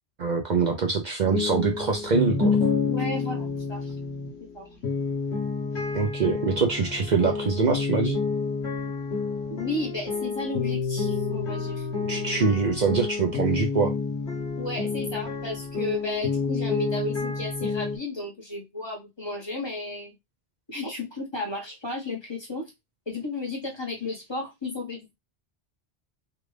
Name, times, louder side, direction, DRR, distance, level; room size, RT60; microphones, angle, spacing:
voice 1, 0.2-2.6 5.9-8.2 12.1-13.9, right 5 dB, 50° right, 3 dB, 0.6 m, -24 dB
sound 1, 1.2-18.0, left 4 dB, 80° left, 1.3 m, -29 dB
voice 2, 2.9-3.9 4.4-4.7 9.5-11.9 14.6-20.1 20.7-22.7 23.1-25.2, left 2 dB, 25° left, -1 dB, 1.2 m, -33 dB
3.4 x 2.5 x 3.2 m, 0.21 s
omnidirectional pair, 1.1 m